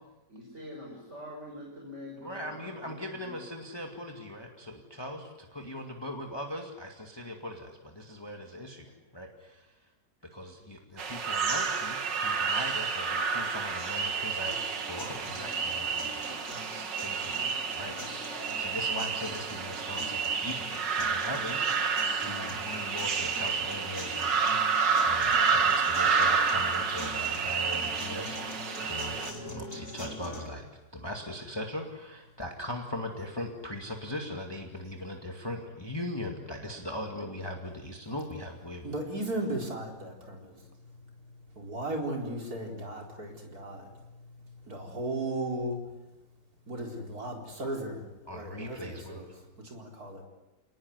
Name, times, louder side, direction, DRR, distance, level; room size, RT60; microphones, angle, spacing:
voice 1, 0.3-3.4 3.7-3.8 8.8-8.9, left 1 dB, 40° right, -1 dB, 6.1 m, -45 dB
voice 2, 2.2-5.3 5.5-8.9 9.1-9.7 10.2-14.6 14.8-16.4 16.7-17.4 17.7-30.7 30.9-38.9 48.3-49.3, left 1 dB, 15° left, 2 dB, 2.2 m, -40 dB
sound 1, 11.0-29.3, right 5 dB, 85° right, 2.6 m, -29 dB
sound 2, 14.5-30.5, left 1 dB, 60° left, 5.9 m, -44 dB
voice 3, 38.8-40.6 41.6-43.9 44.7-45.8 46.7-49.3 49.6-50.2, right 1 dB, 55° right, 1 dB, 4.8 m, -36 dB
28.5 x 20.0 x 9.7 m, 1.0 s
omnidirectional pair, 1.9 m